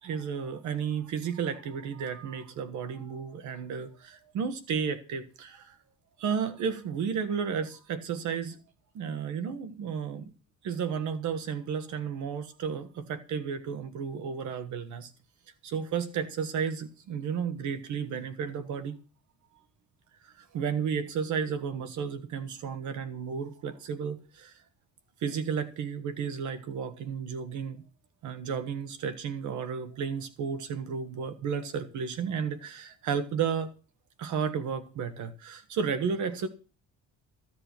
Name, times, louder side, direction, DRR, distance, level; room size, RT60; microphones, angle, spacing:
voice 1, 0.0-5.8 6.2-8.6 8.9-10.3 10.6-15.1 15.6-19.0 20.2-24.6 25.2-27.8 28.2-33.7 34.2-36.5, right 6 dB, 65° right, 1.5 m, -33 dB
15.0 x 7.8 x 6.0 m
cardioid pair, 165°, 32 cm